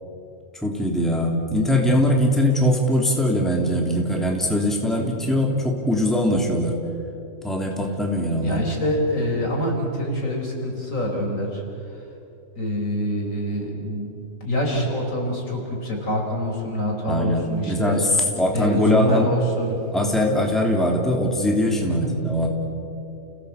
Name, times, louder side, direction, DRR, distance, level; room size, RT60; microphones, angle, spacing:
voice 1, 0.6-6.8 7.4-8.7 17.1-19.3 19.9-22.5, left 1 dB, ahead, 0 dB, 2.9 m, -21 dB
voice 2, 8.4-11.6 12.5-14.1 14.4-18.0 18.5-19.8 21.9-22.1, equal, 65° left, 0 dB, 5.0 m, -25 dB
30.0 x 17.5 x 8.2 m, 2.8 s
omnidirectional pair, 1.5 m